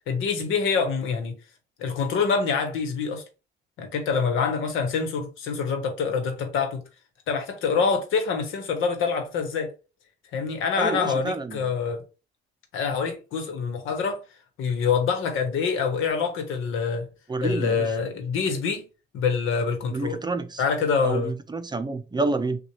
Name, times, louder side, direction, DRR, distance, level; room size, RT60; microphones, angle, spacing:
voice 1, 0.1-1.4 1.8-3.2 3.8-6.8 7.3-9.7 10.3-12.0 12.7-14.2 14.6-17.1 17.4-18.8 19.1-20.2 20.6-21.3, left 5 dB, 90° left, 1.1 m, -25 dB
voice 2, 10.8-11.7 17.3-17.9 19.9-20.6 21.0-22.6, right 3 dB, 20° right, 0.5 m, -28 dB
6.1 x 2.3 x 3.1 m
cardioid pair, 90°, 20 cm